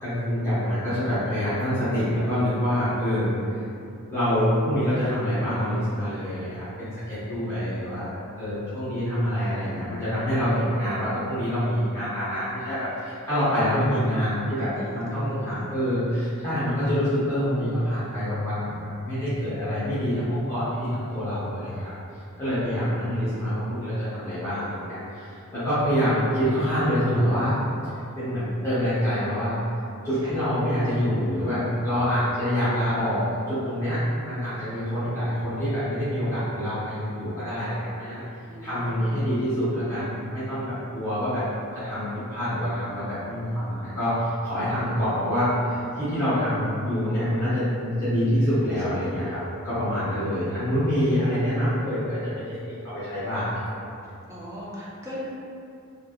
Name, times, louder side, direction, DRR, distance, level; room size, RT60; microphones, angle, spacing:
voice 1, 0.0-3.5 4.1-8.1 8.4-21.9 22.4-27.6 27.8-29.6 30.0-38.2 38.6-41.5 41.7-49.4 49.6-53.9, equal, 15° left, -15 dB, 0.8 m, -26 dB
voice 2, 14.1-15.7 23.0-23.3 30.2-30.3 38.4-39.2 48.8-48.9 50.1-50.5 54.3-55.2, equal, 15° right, -8 dB, 0.5 m, -40 dB
3.1 x 2.4 x 2.4 m, 2.5 s
head